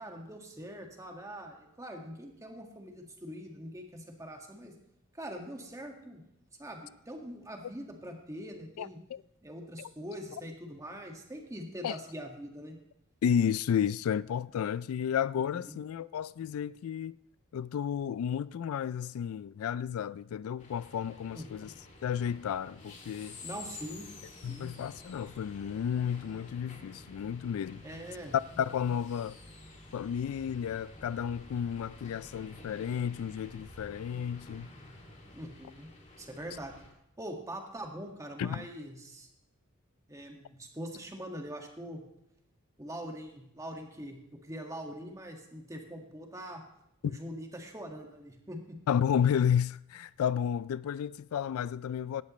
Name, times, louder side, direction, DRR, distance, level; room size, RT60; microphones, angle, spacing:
voice 1, 0.0-4.7 5.1-6.2 6.6-9.0 9.4-12.8 15.5-15.8 21.3-21.5 23.4-24.1 24.5-24.7 27.8-28.4 35.3-35.9 36.2-36.7 37.2-39.3 40.1-42.0 42.8-46.6 47.0-48.8, equal, 15° right, 1.8 m, -43 dB
voice 2, 8.8-9.2 9.8-9.9 11.8-12.0 13.2-17.2 17.5-21.7 22.0-23.4 24.4-27.8 28.6-29.4 29.9-34.7 38.4-38.7 48.9-52.2, left 8 dB, 80° left, 0.3 m, -32 dB
sound 1, 20.6-36.9, left 2 dB, 35° left, 2.4 m, -50 dB
17.0 x 11.5 x 3.1 m
head